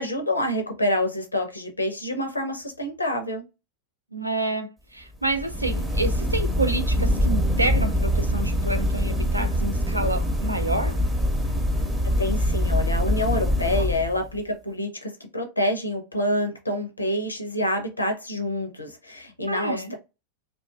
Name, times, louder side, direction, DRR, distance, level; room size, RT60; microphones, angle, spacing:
voice 1, 0.0-3.4 12.0-19.9, left 1 dB, 80° left, 0.5 m, -27 dB
voice 2, 4.1-11.0 13.8-13.9 19.5-19.9, right 2 dB, 85° right, 0.4 m, -28 dB
sound 1, 5.2-14.4, equal, 10° right, 0.6 m, -24 dB
2.5 x 2.2 x 2.2 m
figure-of-eight pair, 90°, 0 cm